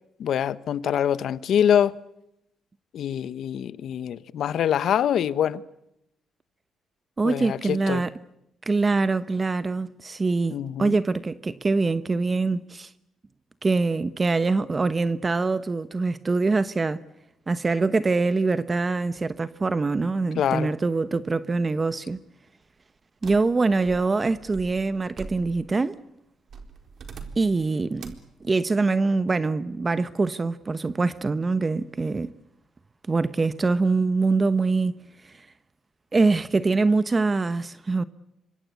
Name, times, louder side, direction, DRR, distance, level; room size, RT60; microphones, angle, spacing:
voice 1, 0.2-1.9 2.9-5.6 7.2-8.0 10.5-10.9 20.4-20.7, left 9 dB, 70° left, 1.1 m, -24 dB
voice 2, 7.2-8.1 8.6-12.9 13.6-17.0 17.5-22.2 23.2-26.0 27.4-28.1 28.4-32.3 33.1-34.9 35.2-35.5 36.1-38.0, right 3 dB, 30° right, 1.0 m, -24 dB
sound 1, 23.2-25.8 26.5-27.6 28.0-28.3, right 5 dB, 55° right, 3.9 m, -43 dB
26.5 x 24.0 x 8.4 m
cardioid pair, 90°, 0 cm